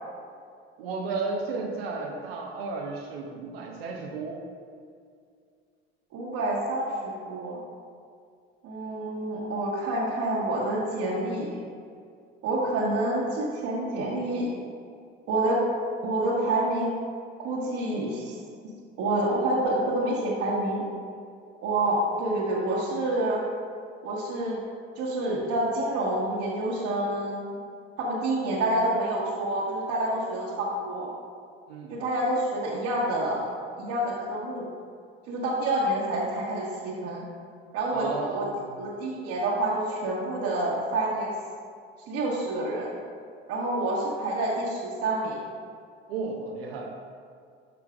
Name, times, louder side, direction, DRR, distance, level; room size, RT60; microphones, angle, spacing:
voice 1, 0.8-4.4 31.7-31.9 37.9-38.7 46.1-47.1, right 4 dB, 85° right, 0 dB, 0.8 m, -33 dB
voice 2, 6.1-7.6 8.6-11.6 12.4-14.5 15.3-15.6 16.0-16.9 17.4-18.3 19.0-20.8 21.6-23.4 24.0-24.6 24.9-27.6 28.0-31.1 31.9-33.5 33.8-34.7 35.3-37.3 37.7-38.1 38.3-38.5 38.8-41.3 42.1-42.9 43.5-45.4, right 1 dB, 65° right, -7 dB, 1.4 m, -28 dB
13.0 x 4.6 x 2.5 m, 2.3 s
hypercardioid pair, 75°, 30 cm